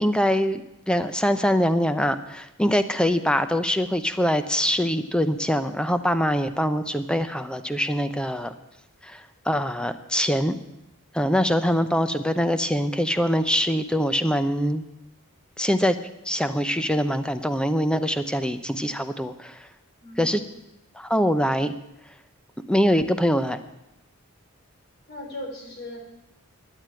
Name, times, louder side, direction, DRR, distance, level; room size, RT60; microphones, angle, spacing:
voice 1, 0.0-8.5 9.0-9.2 9.5-10.6 11.1-14.8 15.6-16.0 16.3-19.6 20.2-20.4 21.0-21.7 22.7-23.6, equal, 5° left, 10 dB, 0.7 m, -23 dB
voice 2, 20.0-20.4 25.1-26.0, left 1 dB, 50° left, 1 dB, 3.7 m, -37 dB
12.5 x 9.4 x 8.9 m, 0.89 s
head